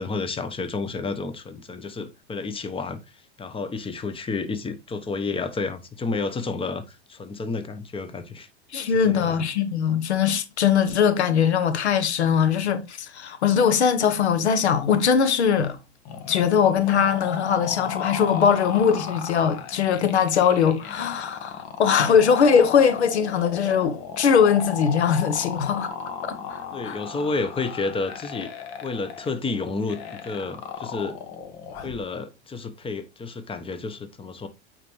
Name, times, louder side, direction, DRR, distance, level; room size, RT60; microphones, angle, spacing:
voice 1, 0.0-3.0 3.4-8.5 8.8-9.4 26.7-28.5 28.8-31.2 31.8-34.5, left 3 dB, 15° left, 1.1 m, -30 dB
voice 2, 8.7-15.8 16.3-25.9 26.2-27.0, left 7 dB, 85° left, 1.2 m, -21 dB
sound 1, 16.1-32.0, left 6 dB, 55° left, 1.6 m, -36 dB
9.0 x 4.3 x 3.2 m
hypercardioid pair, 95°, 33 cm